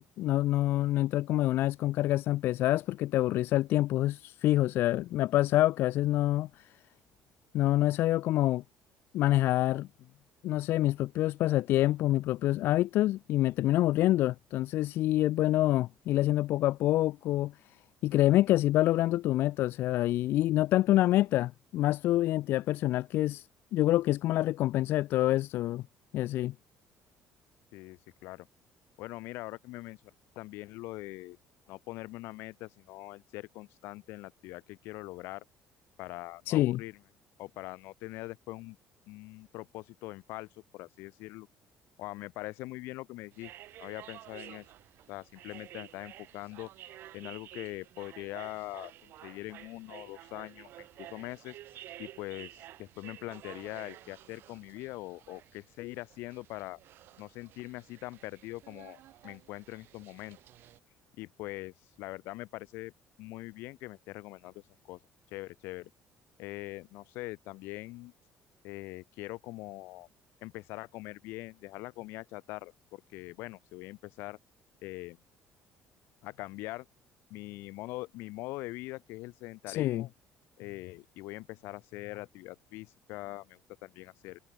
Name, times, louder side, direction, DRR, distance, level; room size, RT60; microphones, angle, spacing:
voice 1, 0.0-6.7 7.5-8.6 9.1-9.9 10.4-17.5 18.0-23.5 23.7-25.8 26.1-26.5 36.5-36.8 79.7-80.1, left 15 dB, 70° left, 0.4 m, -26 dB
voice 2, 27.7-28.5 29.0-31.4 31.7-35.4 36.0-37.0 37.4-38.8 39.1-40.5 40.7-41.5 42.0-43.5 43.8-44.7 45.1-51.6 52.0-56.8 57.2-60.4 61.2-62.9 63.2-65.0 65.3-65.9 66.4-68.1 68.6-70.1 70.4-74.4 74.8-75.2 76.2-76.9 77.3-80.1 80.6-84.4, left 20 dB, 85° left, 2.1 m, -42 dB
sound 1, 43.3-60.8, right 14 dB, 65° right, 4.3 m, -51 dB
cardioid pair, 120°, 4 cm